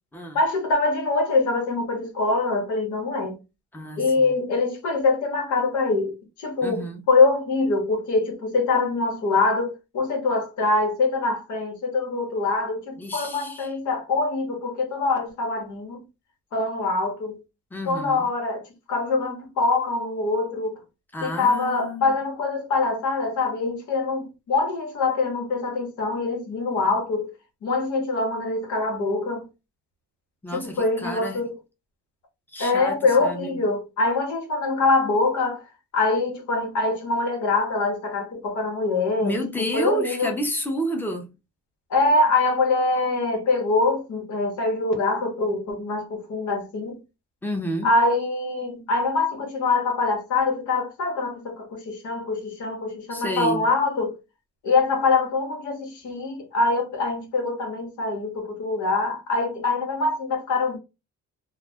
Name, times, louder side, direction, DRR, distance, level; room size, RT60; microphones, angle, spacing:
voice 1, 0.3-3.4 4.0-16.0 16.5-17.4 17.9-18.6 18.9-20.8 21.2-27.3 27.6-29.4 30.5-31.5 32.6-35.6 35.9-39.3 39.7-40.3 41.9-47.0 47.8-54.1 54.6-60.8, left 3 dB, 75° left, 1.0 m, -24 dB
voice 2, 3.7-4.1 6.6-7.0 13.0-13.8 17.7-18.3 21.1-22.2 30.4-31.5 32.5-33.6 39.2-41.3 47.4-47.9 53.1-53.7, equal, 5° left, 0.7 m, -30 dB
2.3 x 2.1 x 3.4 m
cardioid pair, 90°, 30 cm